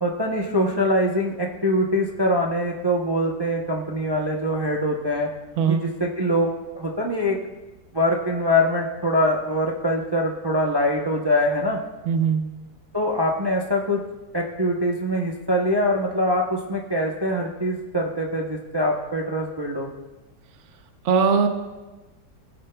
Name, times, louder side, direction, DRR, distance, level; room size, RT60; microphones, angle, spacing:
voice 1, 0.0-5.3 5.7-6.5 6.8-7.4 7.9-11.8 12.9-14.0 14.3-19.9, equal, 35° right, -1 dB, 0.4 m, -23 dB
voice 2, 12.1-12.5 21.0-21.5, right 6 dB, 55° right, 6 dB, 0.9 m, -20 dB
16.5 x 9.2 x 2.3 m, 1.1 s
omnidirectional pair, 1.8 m